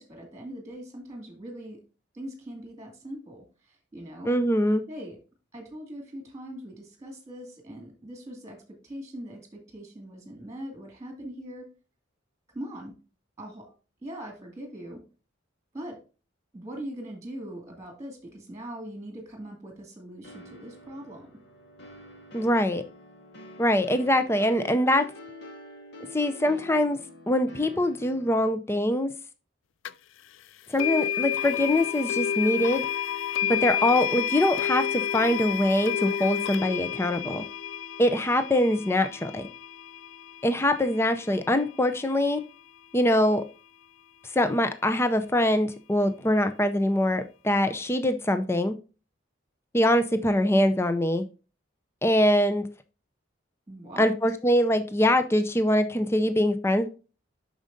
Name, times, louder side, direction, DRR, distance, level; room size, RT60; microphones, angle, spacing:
voice 1, 0.0-1.8 2.1-4.4 4.9-5.2 5.5-11.7 12.5-12.9 13.4-13.7 14.0-15.0 15.7-16.0 16.5-21.3 53.7-54.1, right 1 dB, 15° right, 2 dB, 2.4 m, -41 dB
voice 2, 4.2-4.8 22.3-22.8 23.6-25.1 26.1-27.0 27.3-29.1 30.7-32.9 33.5-37.4 38.0-39.5 40.4-42.4 42.9-43.4 44.3-48.8 49.7-51.2 52.0-52.7 54.0-56.9, left 1 dB, 15° left, 9 dB, 0.5 m, -23 dB
sound 1, 20.2-28.5, left 1 dB, 60° left, 1.5 m, -46 dB
sound 2, 29.8-29.9 30.8-41.8, left 9 dB, 80° left, 0.4 m, -30 dB
8.6 x 6.4 x 2.7 m, 0.33 s
head